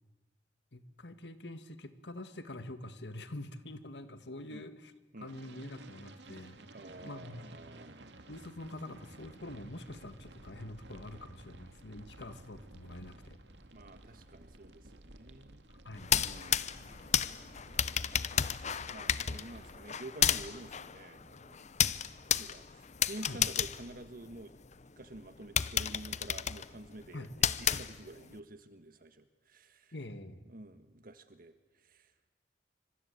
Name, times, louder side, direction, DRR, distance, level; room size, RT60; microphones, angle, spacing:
voice 1, 0.7-4.9 5.2-6.6 7.0-7.5 8.3-13.4 15.7-16.2 23.3-23.4 27.1-27.3 29.9-30.4, left 1 dB, 70° left, 10 dB, 1.9 m, -45 dB
sound 1, 5.3-19.8, right 2 dB, 70° right, 2.3 m, -54 dB
voice 2, 6.7-8.1 13.7-15.6 16.2-16.8 17.3-17.6 18.9-21.7 22.4-24.5 25.0-27.3 27.6-29.9 30.5-32.1, right 2 dB, 55° right, 10 dB, 1.5 m, -49 dB
sound 2, 16.0-24.7 25.1-25.2 25.6-28.3, left 9 dB, 40° left, 0.8 m, -32 dB
26.5 x 25.5 x 8.6 m, 1.2 s
head